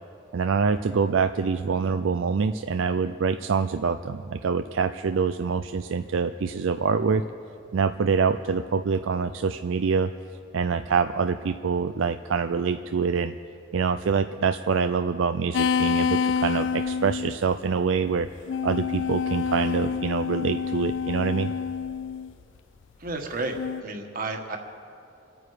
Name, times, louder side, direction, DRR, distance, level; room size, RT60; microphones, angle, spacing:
voice 1, 0.3-7.2 7.7-10.1 10.5-13.3 13.7-18.3 18.6-21.5, right 5 dB, 70° right, 9 dB, 0.4 m, -25 dB
sound 1, 15.5-17.4 18.2-22.3 23.5-23.8, left 6 dB, 65° left, 0.3 m, -27 dB
voice 2, 23.0-24.6, right 2 dB, 45° right, 3 dB, 1.6 m, -32 dB
27.5 x 9.4 x 5.0 m, 2.6 s
head